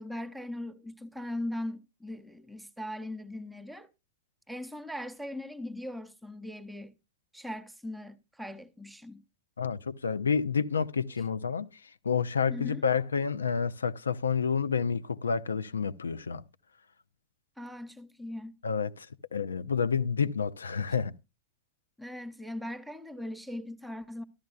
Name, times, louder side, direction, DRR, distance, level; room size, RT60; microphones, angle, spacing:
voice 1, 0.0-3.9 4.5-7.0 7.3-9.2 12.5-12.8 17.6-18.6 20.9-21.0 22.0-24.2, left 1 dB, 5° right, 0.8 m, -39 dB
voice 2, 9.6-11.7 12.0-16.4 18.6-19.1 19.3-21.1, left 6 dB, 75° left, 0.5 m, -29 dB
14.0 x 13.0 x 2.3 m
figure-of-eight pair, 90°, 0 cm